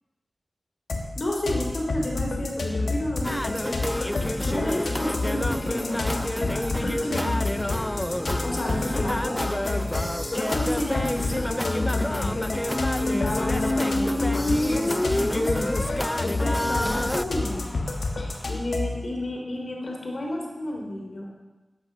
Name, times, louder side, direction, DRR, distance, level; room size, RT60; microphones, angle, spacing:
sound 1, 0.9-19.0, left 3 dB, 80° left, 1.4 m, -30 dB
voice 1, 1.1-4.1 4.4-7.4 8.4-9.8 10.3-17.8 18.2-21.3, left 1 dB, 65° left, -1 dB, 3.3 m, -31 dB
sound 2, 3.2-17.3, left 1 dB, 15° left, 0.3 m, -29 dB
sound 3, 12.6-18.5, left 1 dB, 30° left, 0.9 m, -29 dB
9.3 x 8.2 x 6.7 m, 1.1 s
cardioid pair, 45°, 0 cm